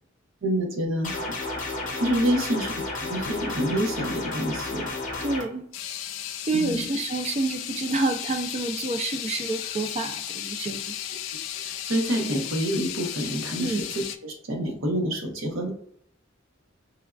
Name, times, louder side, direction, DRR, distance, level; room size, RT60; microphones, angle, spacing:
voice 1, 0.4-1.1 2.0-2.7 3.1-4.9 6.5-6.8 11.6-15.7, equal, 90° right, 2 dB, 0.7 m, -27 dB
sound 1, 1.0-5.4, left 2 dB, 40° left, 0.7 m, -32 dB
sound 2, 3.3-3.4 4.0-4.2 5.3-5.4 5.7-14.2, left 11 dB, 85° left, 0.3 m, -35 dB
voice 2, 5.2-5.6 6.4-11.0 13.6-13.8, right 3 dB, 35° right, 7 dB, 0.3 m, -28 dB
3.3 x 2.3 x 2.3 m, 0.66 s
head